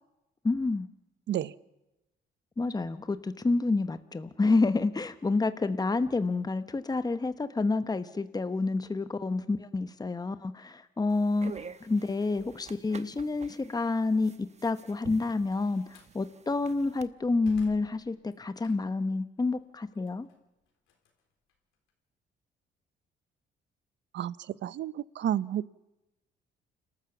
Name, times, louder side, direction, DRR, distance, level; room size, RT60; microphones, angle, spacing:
voice 1, 0.4-0.9 2.6-11.5 11.8-20.3, left 3 dB, 20° left, 11 dB, 1.1 m, -29 dB
sound 1, 11.1-17.1, right 6 dB, 35° right, 1.0 m, -48 dB
Slam, 15.5-16.2 16.7-19.1 19.5-21.9, left 7 dB, 85° left, 3.8 m, -57 dB
voice 2, 24.1-25.7, right 11 dB, 65° right, 19 dB, 0.7 m, -31 dB
29.0 x 13.0 x 7.2 m, 0.99 s
cardioid pair, 90°, 20 cm